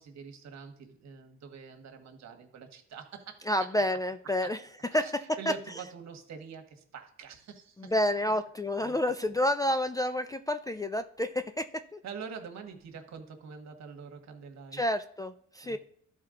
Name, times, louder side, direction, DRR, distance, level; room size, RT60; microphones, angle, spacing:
voice 1, 0.0-3.5 4.4-4.5 4.9-7.9 8.8-9.0 12.0-14.8 15.6-15.8, right 6 dB, 60° right, 5 dB, 1.4 m, -45 dB
voice 2, 3.5-4.6 4.9-5.5 7.8-12.0 14.7-15.8, left 1 dB, 10° left, 6 dB, 0.3 m, -29 dB
12.5 x 4.4 x 3.8 m, 0.63 s
cardioid pair, 90°, 30 cm